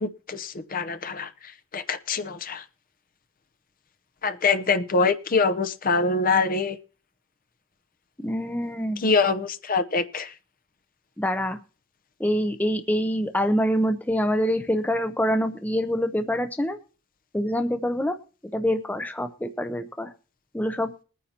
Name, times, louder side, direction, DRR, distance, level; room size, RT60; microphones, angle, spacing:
voice 1, 0.0-2.6 4.2-6.8 9.0-10.3, left 4 dB, 45° left, 9 dB, 0.8 m, -24 dB
voice 2, 8.2-9.0 11.2-11.6 12.2-16.8 17.3-18.2 18.5-20.1 20.5-20.9, equal, 10° left, 8 dB, 0.7 m, -25 dB
21.0 x 9.4 x 2.9 m, 0.37 s
head